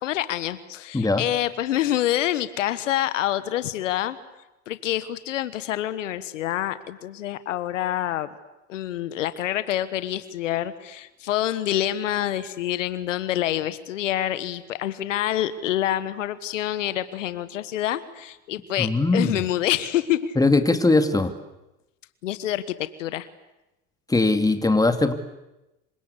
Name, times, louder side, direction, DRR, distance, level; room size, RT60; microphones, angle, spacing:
voice 1, 0.0-4.2 4.7-8.3 8.7-20.3 22.2-23.3, left 12 dB, 85° left, 14 dB, 1.5 m, -27 dB
voice 2, 18.8-19.4 20.4-21.3 24.1-25.1, left 2 dB, 10° left, 8 dB, 2.6 m, -20 dB
27.0 x 25.0 x 8.3 m, 0.94 s
hypercardioid pair, 90°, 36 cm